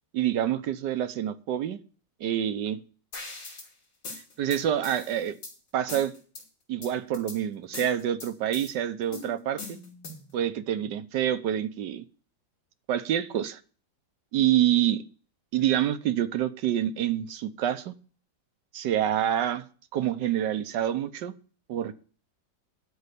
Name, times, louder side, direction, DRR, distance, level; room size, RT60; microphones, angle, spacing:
voice 1, 0.1-1.8 2.2-2.8 4.4-5.4 5.7-6.1 6.7-9.8 10.3-12.0 12.9-13.6 14.3-15.0 15.5-17.9 18.7-19.6 19.9-21.3 21.7-22.1, right 11 dB, 70° right, 1.3 m, -27 dB
sound 1, 3.1-3.7 4.0-5.5 5.9-6.4 6.8-7.4 7.7-8.7 9.1-10.3, left 3 dB, 65° left, 3.4 m, -41 dB
12.0 x 4.7 x 8.2 m
omnidirectional pair, 2.1 m